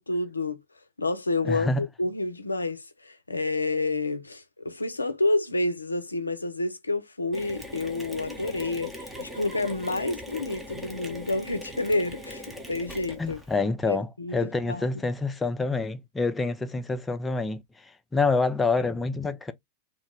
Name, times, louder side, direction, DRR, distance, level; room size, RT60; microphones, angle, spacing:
voice 1, 0.1-0.6 1.0-13.4 13.9-14.9, left 2 dB, 90° left, 0.4 m, -29 dB
voice 2, 1.4-1.8 13.2-19.5, left 3 dB, 10° left, 0.4 m, -27 dB
Mechanisms, 7.3-13.6, equal, 10° right, 0.8 m, -40 dB
2.6 x 2.1 x 3.3 m
figure-of-eight pair, 95°, 0 cm